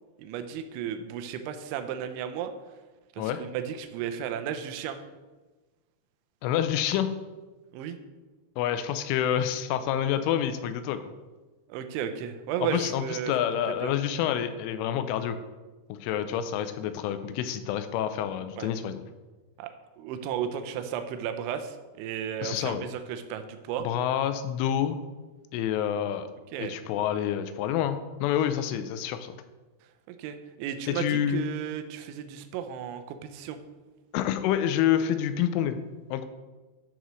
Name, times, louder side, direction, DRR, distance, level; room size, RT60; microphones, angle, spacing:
voice 1, 0.2-2.5 3.1-5.0 7.7-8.0 11.7-13.3 13.8-13.9 18.6-18.7 19.6-19.7 20.0-23.9 26.5-26.8 30.1-33.6, right 9 dB, 85° right, 8 dB, 2.9 m, -34 dB
voice 2, 6.4-7.1 8.6-11.0 12.7-15.4 15.9-19.0 22.4-22.8 23.8-25.0 25.5-26.3 26.6-29.4 30.9-31.5 34.1-35.8 36.1-36.3, left 10 dB, 90° left, 10 dB, 3.1 m, -28 dB
12.0 x 6.3 x 3.1 m, 1.2 s
omnidirectional pair, 5.5 m